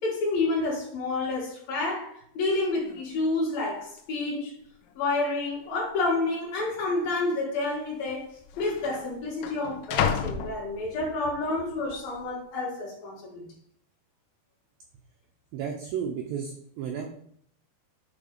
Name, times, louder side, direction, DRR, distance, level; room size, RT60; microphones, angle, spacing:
voice 1, 0.0-4.5 5.0-8.3 8.6-13.4, left 2 dB, 60° left, -3 dB, 3.4 m, -29 dB
sound 1, 2.5-2.6 2.9-3.3 4.0-4.1 4.8-5.3 5.6-5.7 6.6-6.8 7.8-7.9 8.1-11.3 11.8-12.2, left 8 dB, 85° left, 3.0 m, -33 dB
voice 2, 15.5-17.1, right 7 dB, 85° right, 2 dB, 2.1 m, -33 dB
8.7 x 3.7 x 4.9 m, 0.65 s
omnidirectional pair, 5.0 m